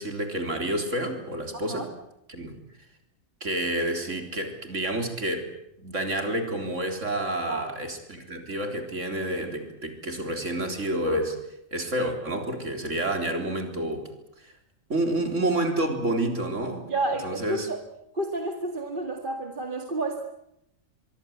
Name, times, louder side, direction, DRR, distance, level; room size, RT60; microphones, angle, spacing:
voice 1, 0.0-1.9 2.3-2.6 3.4-5.5 5.8-11.4 11.7-14.1 14.4-14.5 14.9-16.9 17.2-17.7, right 1 dB, 65° right, 5 dB, 4.2 m, -29 dB
voice 2, 1.5-1.9 7.4-7.7 16.9-17.8 18.1-20.2, right 2 dB, 40° right, 5 dB, 2.1 m, -30 dB
24.0 x 23.5 x 8.0 m, 0.81 s
omnidirectional pair, 1.4 m